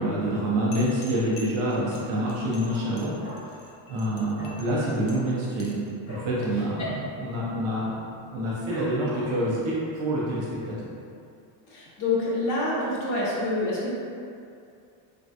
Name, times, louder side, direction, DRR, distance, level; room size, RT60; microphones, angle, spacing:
voice 1, 0.0-3.5 3.9-5.8 6.1-6.9 7.2-7.9 8.3-10.9, right 1 dB, 40° right, -6 dB, 0.4 m, -27 dB
sound 1, 0.7-5.9, left 2 dB, 85° left, 0.6 m, -47 dB
Dog, 1.1-1.6 1.9-2.0 2.2-3.7 3.9-4.0 4.3-4.6 4.9-6.4 6.7-6.9 7.1-7.6 8.0-8.1 8.7-9.5 10.0-10.1, equal, 60° left, 1.5 m, -44 dB
voice 2, 11.7-13.9, left 2 dB, 40° left, -6 dB, 0.5 m, -27 dB
3.2 x 2.2 x 2.6 m, 2.5 s
cardioid pair, 170°, 50 cm